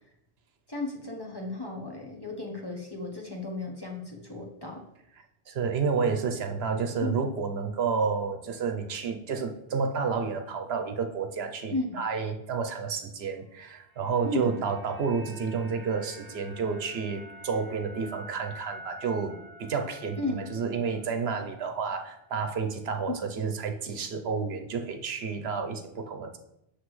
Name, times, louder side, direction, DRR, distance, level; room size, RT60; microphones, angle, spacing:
voice 1, 0.7-4.8 7.0-7.2 11.7-12.0 14.2-14.6 20.2-20.4, left 2 dB, 25° left, 0 dB, 0.9 m, -34 dB
voice 2, 5.5-26.4, right 5 dB, 70° right, 6 dB, 1.0 m, -30 dB
sound 1, 13.6-21.9 22.2-22.4, equal, 35° right, 1.9 m, -48 dB
8.0 x 6.3 x 3.2 m, 0.81 s
omnidirectional pair, 1.1 m